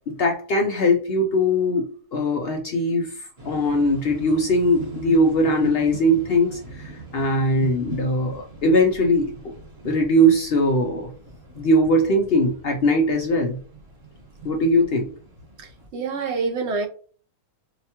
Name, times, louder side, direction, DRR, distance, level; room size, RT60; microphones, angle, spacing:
voice 1, 0.1-9.5 9.8-11.1 11.6-13.6 14.4-15.1, equal, 75° left, 0.5 m, -21 dB
sound 1, 3.4-15.9, right 4 dB, 45° right, 1.4 m, -41 dB
voice 2, 15.6-16.9, right 4 dB, 65° right, 0.7 m, -27 dB
4.8 x 2.2 x 2.8 m
omnidirectional pair, 1.6 m